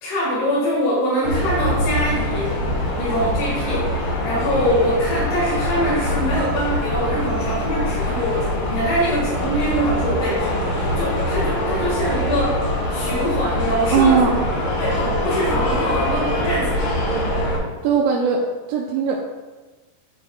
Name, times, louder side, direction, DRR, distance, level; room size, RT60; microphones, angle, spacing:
voice 1, 0.0-2.6 3.0-12.6 12.9-14.4 14.8-16.9, equal, 85° left, -8 dB, 3.9 m, -24 dB
sound 1, 1.2-17.6, left 1 dB, 45° left, 1.8 m, -23 dB
voice 2, 13.8-14.4 17.8-19.2, right 6 dB, 80° right, -2 dB, 2.4 m, -19 dB
11.5 x 6.3 x 2.3 m, 1.2 s
omnidirectional pair, 4.4 m